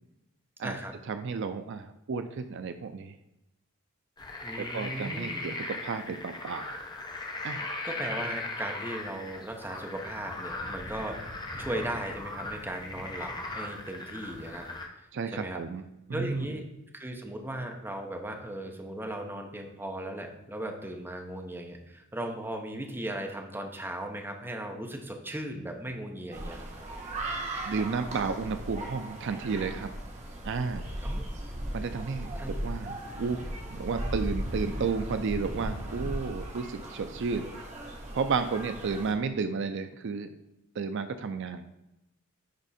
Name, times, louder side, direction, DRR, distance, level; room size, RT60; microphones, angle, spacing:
voice 1, 1.1-3.2 4.6-6.8 7.4-7.7 15.1-16.5 27.6-29.9 30.4-30.8 31.7-32.3 32.6-33.4 33.7-37.5 38.1-40.3 40.7-41.6, right 5 dB, 60° right, 9 dB, 0.4 m, -32 dB
sound 1, 4.2-14.9, left 2 dB, 20° left, 0.9 m, -38 dB
voice 2, 4.4-5.5 7.8-14.6 14.9-15.6 16.1-16.7 16.9-26.7 31.0-31.2 32.4-32.5, right 1 dB, 10° right, 2 dB, 0.8 m, -37 dB
sound 2, 26.3-39.1, right 1 dB, 35° right, 1.3 m, -37 dB
10.5 x 3.5 x 4.2 m, 0.91 s
head